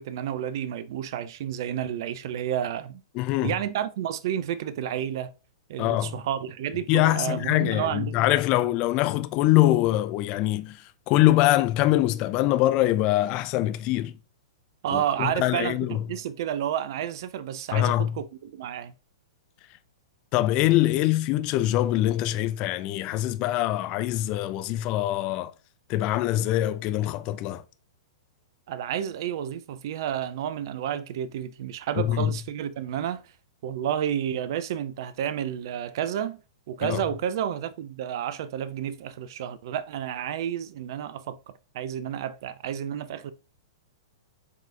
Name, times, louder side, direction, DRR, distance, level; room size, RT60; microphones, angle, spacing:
voice 1, 0.0-3.0 3.4-5.3 5.7-8.2 14.8-18.9 28.7-33.3 33.6-36.4 36.7-43.3, right 10 dB, 50° right, 0.3 m, -31 dB
voice 2, 3.1-3.6 5.8-6.2 6.9-14.2 14.9-16.0 17.7-18.2 20.3-25.5 25.9-27.6 32.0-32.3 36.8-37.0, left 15 dB, 35° left, 0.3 m, -24 dB
4.7 x 3.9 x 2.2 m
figure-of-eight pair, 105°, 3 cm